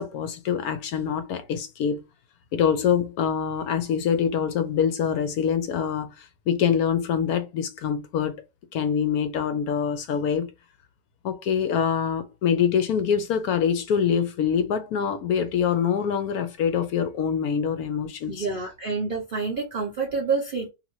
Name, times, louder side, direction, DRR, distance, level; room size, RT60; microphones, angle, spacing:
voice 1, 0.0-2.0 2.5-8.4 8.7-10.5 11.2-18.5, left 7 dB, 70° left, 0.9 m, -25 dB
voice 2, 18.3-20.7, right 4 dB, 80° right, 0.4 m, -28 dB
2.8 x 2.6 x 2.9 m
omnidirectional pair, 1.8 m